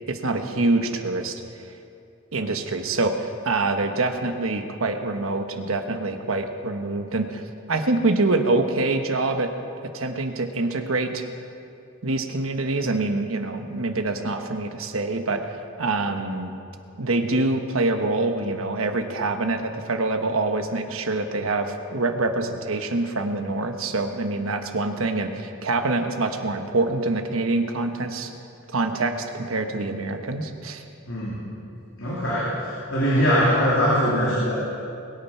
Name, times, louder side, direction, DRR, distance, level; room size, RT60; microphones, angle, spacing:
voice 1, 0.1-1.4 2.3-7.4 7.7-9.5 9.8-11.2 12.0-15.4 15.8-16.5 17.0-28.3 28.7-30.8 33.1-33.2, right 2 dB, 85° right, 6 dB, 1.2 m, -25 dB
voice 2, 31.1-31.4 32.0-34.6, equal, 65° left, -7 dB, 3.0 m, -22 dB
21.5 x 9.1 x 5.7 m, 2.5 s
head